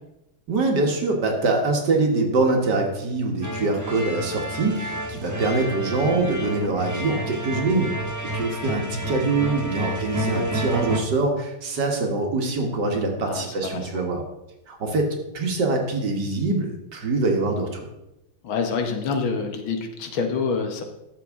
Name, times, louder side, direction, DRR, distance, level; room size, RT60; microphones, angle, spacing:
voice 1, 0.5-7.9 8.2-14.2 14.7-17.9, right 3 dB, 55° right, 2 dB, 1.8 m, -24 dB
sound 1, 3.4-11.0, right 1 dB, 30° right, 0.3 m, -30 dB
voice 2, 13.2-13.9 18.4-20.8, left 5 dB, 70° left, 5 dB, 1.8 m, -27 dB
12.5 x 7.2 x 3.6 m, 0.91 s
omnidirectional pair, 2.3 m